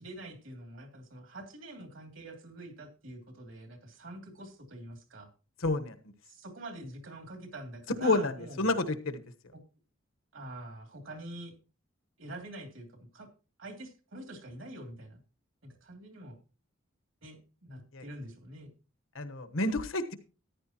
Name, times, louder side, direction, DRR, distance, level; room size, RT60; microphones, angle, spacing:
voice 1, 0.0-5.3 6.3-8.7 9.5-9.6 10.3-11.5 12.2-12.9 13.1-13.3 13.6-15.2 15.6-16.4 17.2-18.7, right 1 dB, 70° right, 4 dB, 2.8 m, -45 dB
voice 2, 5.6-5.9 8.0-9.2 17.9-18.0 19.1-20.1, left 2 dB, 80° left, 10 dB, 1.2 m, -29 dB
14.0 x 10.0 x 2.9 m, 0.33 s
head